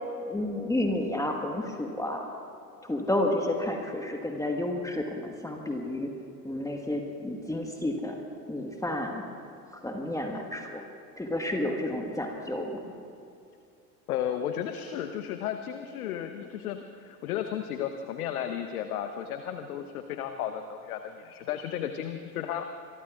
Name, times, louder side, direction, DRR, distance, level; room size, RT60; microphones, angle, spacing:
voice 1, 0.2-2.3 2.8-6.1 6.4-8.1 8.5-9.2 9.8-10.8 11.2-12.8, left 1 dB, 5° left, 2 dB, 1.4 m, -31 dB
voice 2, 14.1-22.6, left 9 dB, 60° left, 7 dB, 1.0 m, -34 dB
26.0 x 23.0 x 2.4 m, 2.6 s
figure-of-eight pair, 80°, 49 cm